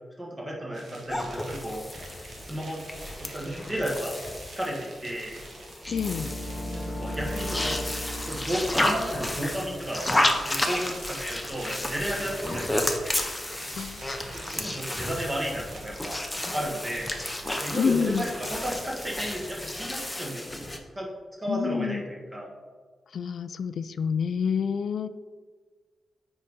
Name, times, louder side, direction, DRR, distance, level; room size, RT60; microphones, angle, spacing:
voice 1, 0.2-1.8 2.4-2.8 3.2-5.4 6.7-7.8 8.2-13.0 13.4-13.5 14.3-16.2 16.5-17.1 17.6-20.4 20.9-21.1 21.4-22.5, equal, 20° right, -3 dB, 1.3 m, -33 dB
sound 1, 0.7-19.9, right 2 dB, 60° right, 1.2 m, -48 dB
sound 2, 1.1-20.8, left 1 dB, 10° left, 0.7 m, -32 dB
voice 2, 5.9-6.3 13.7-14.0 17.7-18.3 21.5-22.0 23.1-25.1, left 6 dB, 65° left, 13 dB, 0.3 m, -28 dB
sound 3, 5.9-9.8, left 1 dB, 40° left, 0.9 m, -36 dB
9.3 x 4.0 x 3.7 m, 1.5 s
wide cardioid pair, 125°, 0 cm